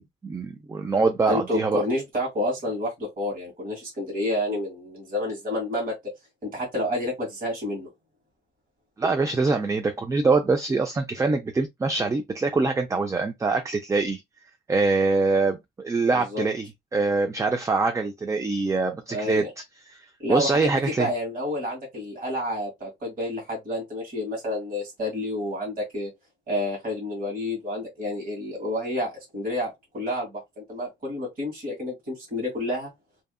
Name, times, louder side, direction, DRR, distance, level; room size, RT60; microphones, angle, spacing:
voice 1, 0.0-1.8 9.0-14.2 14.7-19.4 19.9-20.0 20.3-21.1, right 3 dB, 15° right, 0.3 m, -24 dB
voice 2, 1.3-5.9 6.4-7.9 16.1-16.4 19.1-19.5 20.2-26.1 26.5-32.9, left 1 dB, 45° right, 1.7 m, -29 dB
2.8 x 2.3 x 2.3 m
cardioid pair, 90°, 20 cm